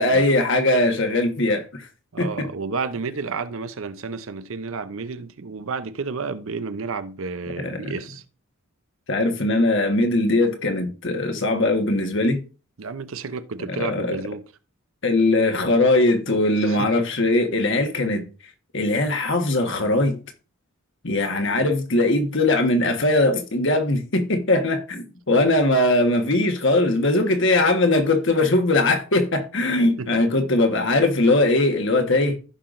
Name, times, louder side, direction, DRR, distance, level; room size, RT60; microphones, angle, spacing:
voice 1, 0.0-1.9 2.2-2.5 7.6-7.9 9.1-12.4 13.7-14.2 15.0-18.2 18.7-20.2 21.0-32.4, left 2 dB, 55° left, 1.4 m, -20 dB
voice 2, 2.1-8.2 12.8-14.4 16.6-16.9 30.0-30.1, right 4 dB, 65° right, 0.7 m, -31 dB
15.5 x 5.8 x 2.6 m
head